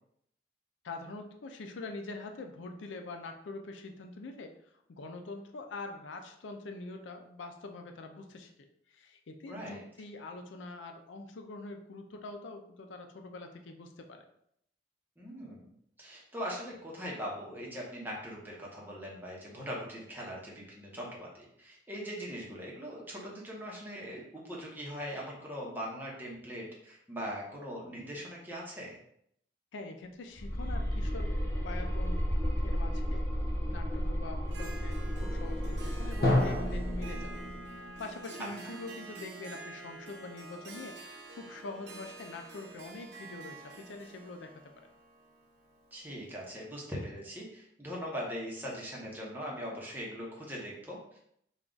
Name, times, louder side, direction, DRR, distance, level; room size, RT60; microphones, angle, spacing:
voice 1, 0.8-4.5 4.9-8.5 8.9-14.3 29.7-31.3 31.6-32.3 32.6-33.3 33.7-37.3 38.0-41.0 41.3-44.7, left 3 dB, 90° left, 5 dB, 0.4 m, -44 dB
voice 2, 9.5-9.8 15.2-15.7 16.0-29.0 38.6-38.7 45.9-51.2, equal, 10° right, -4 dB, 0.9 m, -41 dB
sound 1, 30.4-37.6, equal, 15° left, 0.4 m, -33 dB
Harp, 34.5-46.3, right 3 dB, 60° right, 0.6 m, -48 dB
Drum, 36.2-39.9, left 1 dB, 55° left, 0.8 m, -33 dB
3.5 x 2.3 x 3.8 m, 0.73 s
head